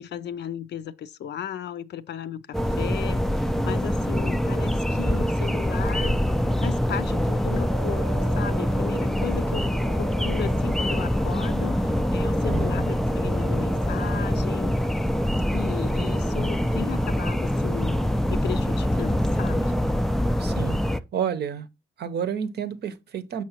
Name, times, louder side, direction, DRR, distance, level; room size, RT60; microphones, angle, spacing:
voice 1, 0.0-6.2 6.6-14.7 15.5-19.7, left 9 dB, 60° left, 0.5 m, -35 dB
sound 1, 2.5-21.0, equal, ahead, 0.3 m, -24 dB
sound 2, 7.7-17.1, right 13 dB, 85° right, 0.8 m, -44 dB
voice 2, 12.5-13.0 20.4-20.8 21.1-21.7 22.0-23.4, right 8 dB, 55° right, 0.7 m, -30 dB
6.2 x 5.8 x 2.8 m
cardioid pair, 90°, 20 cm